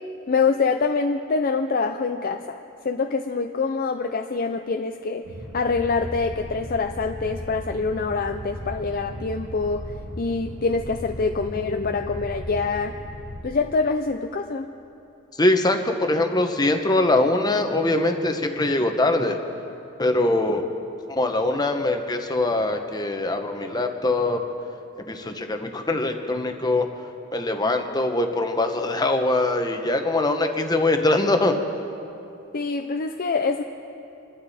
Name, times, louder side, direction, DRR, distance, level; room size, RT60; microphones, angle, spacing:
voice 1, 0.3-2.6 2.8-5.2 5.5-12.9 13.4-14.7 20.5-20.6 32.5-33.6, left 4 dB, 45° left, 5 dB, 0.5 m, -25 dB
sound 1, 5.2-13.4, equal, 85° right, 2.8 m, -37 dB
voice 2, 15.4-19.4 20.0-20.6 21.1-24.4 25.0-26.9 27.3-31.5, left 2 dB, 20° left, 5 dB, 1.0 m, -22 dB
27.0 x 12.0 x 4.3 m, 2.8 s
head